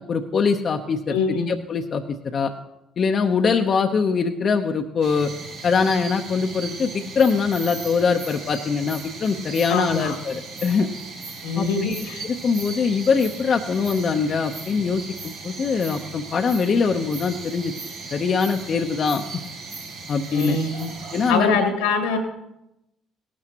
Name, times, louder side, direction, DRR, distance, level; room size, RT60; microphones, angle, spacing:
voice 1, 0.0-2.0 2.3-2.5 3.0-5.3 5.6-10.9 11.6-17.7 18.1-19.4 20.1-20.6 21.1-21.6, left 5 dB, 50° left, 4 dB, 0.8 m, -23 dB
voice 2, 1.1-1.5 9.7-10.1 11.4-12.2 20.3-20.9 21.3-22.2, left 4 dB, 85° left, 4 dB, 2.0 m, -24 dB
sound 1, 5.0-21.3, right 3 dB, 85° right, 5.1 m, -37 dB
17.5 x 12.5 x 3.0 m, 0.89 s
hypercardioid pair, 55°, 0 cm